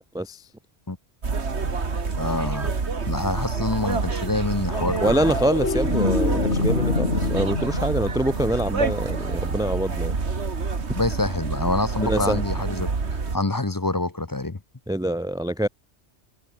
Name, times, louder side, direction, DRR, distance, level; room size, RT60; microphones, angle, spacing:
sound 1, 1.2-13.4, right 4 dB, 70° right, 2.3 m, -27 dB
voice 1, 2.2-2.7 3.1-5.3 6.6-6.7 10.9-12.9 13.3-14.6, left 2 dB, 20° left, 0.8 m, -26 dB
sound 2, 4.7-9.2 11.6-11.8, left 3 dB, 70° left, 2.9 m, -27 dB
voice 2, 5.0-10.1 12.0-12.4 14.9-15.7, right 1 dB, 5° right, 0.4 m, -25 dB
omnidirectional pair, 1.2 m